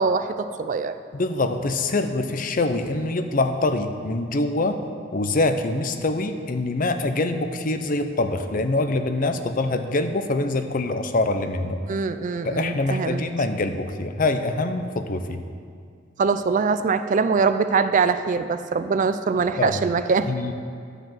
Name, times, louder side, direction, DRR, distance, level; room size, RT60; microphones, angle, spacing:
voice 1, 0.0-1.0 11.9-13.2 16.2-20.3, right 5 dB, 40° right, 11 dB, 0.4 m, -23 dB
voice 2, 1.1-4.8 5.1-11.8 12.4-15.4 19.6-19.8 20.3-20.5, left 2 dB, 45° left, 8 dB, 0.6 m, -24 dB
12.0 x 5.0 x 7.6 m, 2.2 s
head